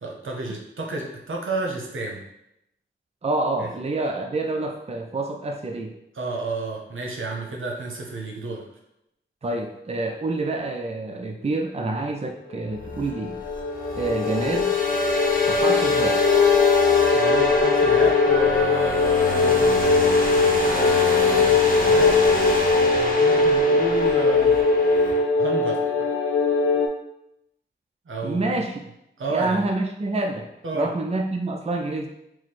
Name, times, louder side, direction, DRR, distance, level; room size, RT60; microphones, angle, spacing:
voice 1, 0.0-2.2 3.6-3.7 6.2-8.6 17.1-19.8 20.6-21.6 21.8-22.1 23.2-24.5 25.4-26.1 28.1-28.7 29.2-29.7 30.6-30.9, right 3 dB, 80° right, 0 dB, 0.8 m, -31 dB
voice 2, 3.2-5.9 9.4-13.4 13.9-14.8 15.5-16.2 28.2-28.8 29.3-30.5 30.7-32.1, right 2 dB, 30° right, 3 dB, 0.5 m, -27 dB
sound 1, 12.7-26.9, left 4 dB, 85° left, 0.5 m, -21 dB
sound 2, 12.8-25.2, left 3 dB, 45° left, 0.8 m, -24 dB
4.6 x 2.0 x 4.2 m, 0.82 s
cardioid pair, 50°, 20 cm